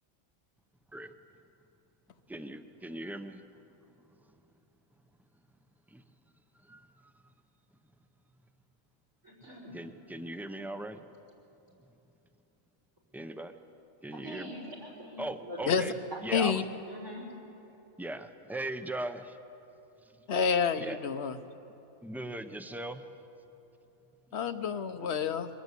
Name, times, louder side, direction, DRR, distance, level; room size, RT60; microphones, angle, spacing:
voice 1, 2.3-3.4 4.0-4.3 5.9-6.0 6.5-7.1 9.7-11.1 13.1-13.5 14.0-14.6 15.2-15.9 16.2-16.7 18.0-19.4 20.0-20.2 20.8-21.0 22.0-23.0 24.3-24.4 25.0-25.1, right 1 dB, ahead, 8 dB, 0.4 m, -39 dB
voice 2, 9.2-9.8 14.1-15.8 16.1-16.5 16.9-17.3, equal, 85° right, -1 dB, 5.3 m, -44 dB
voice 3, 16.3-16.6 20.3-21.4 24.3-25.5, left 6 dB, 55° left, 11 dB, 1.1 m, -28 dB
22.5 x 18.0 x 8.3 m, 3.0 s
omnidirectional pair, 1.4 m